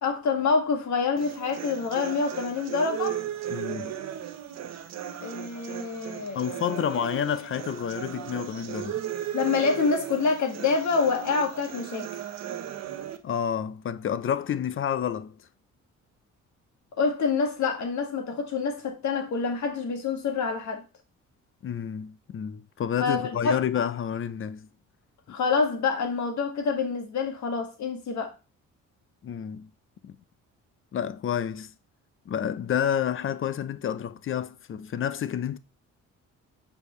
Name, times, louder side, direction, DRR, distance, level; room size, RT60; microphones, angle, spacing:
voice 1, 0.0-3.2 5.2-6.5 9.3-12.2 17.0-20.8 23.0-23.6 25.3-28.3, left 5 dB, 70° left, 1.9 m, -27 dB
sound 1, 1.2-13.2, right 10 dB, 60° right, 0.9 m, -36 dB
voice 2, 3.5-3.9 6.3-9.0 13.2-15.4 21.6-24.7 29.2-29.7 30.0-30.2 30.9-31.7 32.3-35.6, left 9 dB, 45° left, 0.6 m, -29 dB
6.7 x 5.0 x 3.2 m
cardioid pair, 90°, 30 cm